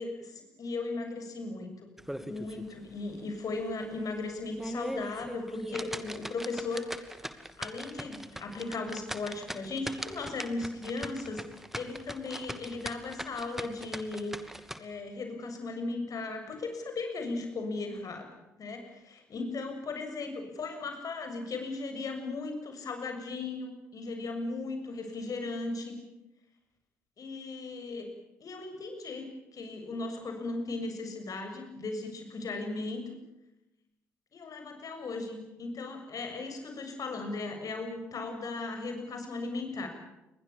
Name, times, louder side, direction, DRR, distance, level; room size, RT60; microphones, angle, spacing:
voice 1, 0.0-1.9 2.2-7.0 7.6-11.5 11.7-14.3 14.8-18.3 18.6-18.8 19.1-26.0 27.2-28.1 28.4-33.2 34.3-39.9, left 3 dB, 45° left, 5 dB, 7.2 m, -37 dB
sound 1, 2.0-2.7 3.1-3.2 3.7-3.8 4.4-14.8, equal, 5° right, 2.5 m, -40 dB
29.5 x 22.5 x 7.3 m, 0.95 s
figure-of-eight pair, 45°, 8 cm